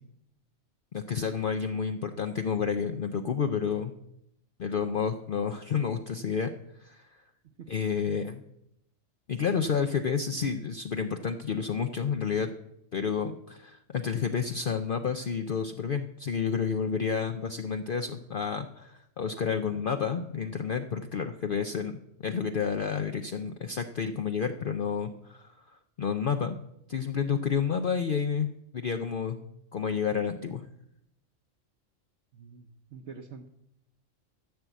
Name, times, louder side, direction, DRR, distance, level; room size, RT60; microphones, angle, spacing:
voice 1, 0.9-3.9 4.6-6.5 6.8-7.2 7.7-8.4 9.3-12.5 12.9-25.5 26.0-26.6 26.9-29.4 29.7-30.7, left 6 dB, 55° left, 7 dB, 0.7 m, -30 dB
voice 2, 32.3-33.5, right 5 dB, 60° right, 3 dB, 1.1 m, -46 dB
14.0 x 6.1 x 8.0 m, 0.80 s
omnidirectional pair, 1.3 m